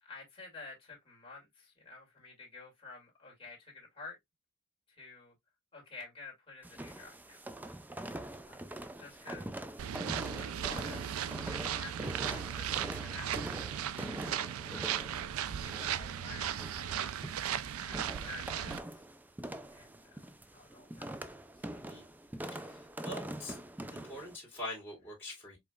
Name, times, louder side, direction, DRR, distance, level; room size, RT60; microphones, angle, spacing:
voice 1, 0.0-4.2 4.9-5.3 5.7-7.8 8.1-9.6 10.4-14.2 14.7-15.1 15.5-17.4 17.8-19.0 19.7-21.2 21.5-21.8, left 3 dB, 25° left, 2.0 m, -51 dB
sound 1, 6.6-24.4, right 1 dB, 10° right, 0.3 m, -44 dB
sound 2, 9.8-18.8, right 10 dB, 80° right, 0.4 m, -37 dB
voice 2, 22.5-23.6 23.9-25.6, left 1 dB, 10° left, 2.3 m, -44 dB
4.9 x 3.2 x 2.2 m
head